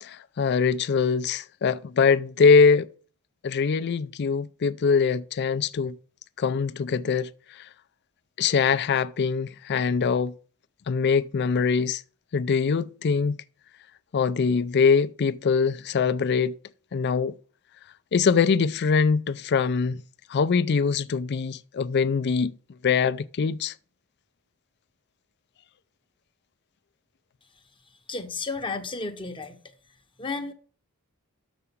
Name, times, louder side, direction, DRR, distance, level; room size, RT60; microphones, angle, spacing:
voice 1, 0.0-2.9 3.4-5.9 6.4-7.3 8.4-10.3 10.9-12.0 12.3-13.4 14.1-16.5 16.9-17.3 18.1-20.0 20.3-22.5 22.8-23.7, left 5 dB, 50° left, 0.4 m, -23 dB
voice 2, 28.1-29.6 30.2-30.5, left 3 dB, 20° left, 0.8 m, -32 dB
6.8 x 4.9 x 7.0 m
head